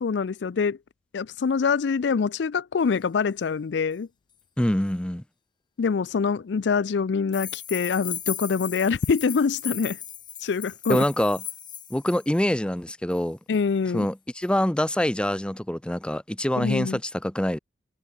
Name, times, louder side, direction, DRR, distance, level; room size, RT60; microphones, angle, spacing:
voice 1, 0.0-0.8 1.1-4.1 5.8-10.0 10.4-11.0 13.5-14.1 16.6-17.0, left 5 dB, 70° left, 0.4 m, -25 dB
voice 2, 4.6-5.2 10.9-11.4 11.9-13.4 13.9-17.6, left 1 dB, 5° left, 0.5 m, -25 dB
sound 1, 7.3-12.4 13.1-13.2 13.5-13.6 14.4-14.5, left 9 dB, 25° left, 1.4 m, -37 dB
head